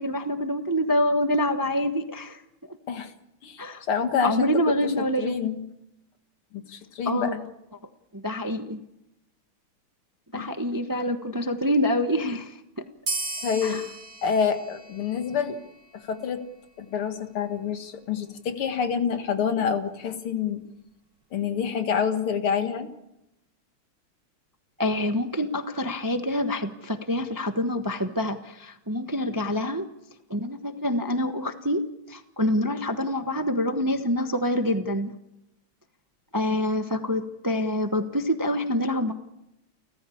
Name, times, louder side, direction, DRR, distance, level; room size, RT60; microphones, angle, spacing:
voice 1, 0.0-2.4 2.7-2.8 3.6-3.8 4.2-5.4 7.0-7.4 8.1-8.8 10.3-12.8 13.6-13.8 24.8-29.9 30.3-35.1 36.3-39.1, left 1 dB, 15° right, 7 dB, 0.7 m, -26 dB
voice 2, 3.4-4.9 5.2-5.6 6.5-7.4 10.3-10.5 13.4-13.8 14.2-15.6 15.9-16.4 16.8-20.6 21.3-22.9, left 6 dB, 85° left, 8 dB, 2.6 m, -27 dB
sound 1, 13.1-16.1, right 3 dB, 55° right, 4.6 m, -36 dB
30.0 x 14.0 x 8.6 m, 0.89 s
omnidirectional pair, 2.3 m